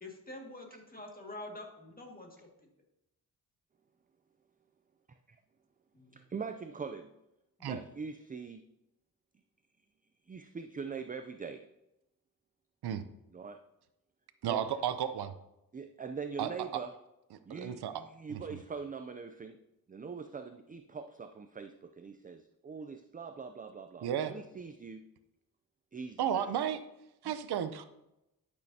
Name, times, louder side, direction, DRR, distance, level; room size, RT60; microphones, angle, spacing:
voice 1, 0.0-2.7 5.9-6.2 7.6-7.7, left 2 dB, 25° left, 0 dB, 1.9 m, -47 dB
voice 2, 6.1-7.1 7.7-8.6 10.3-11.7 13.3-13.6 14.5-14.7 15.7-16.9 17.5-19.6 19.9-25.0 25.9-26.5 27.2-27.3, right 5 dB, 25° right, 7 dB, 0.4 m, -42 dB
voice 3, 14.4-15.3 16.4-16.8 17.3-17.9 18.3-18.6 24.0-24.3 26.2-26.8 27.2-27.8, right 9 dB, 90° right, 11 dB, 0.6 m, -33 dB
12.0 x 6.4 x 2.8 m, 0.89 s
cardioid pair, 90°, 38 cm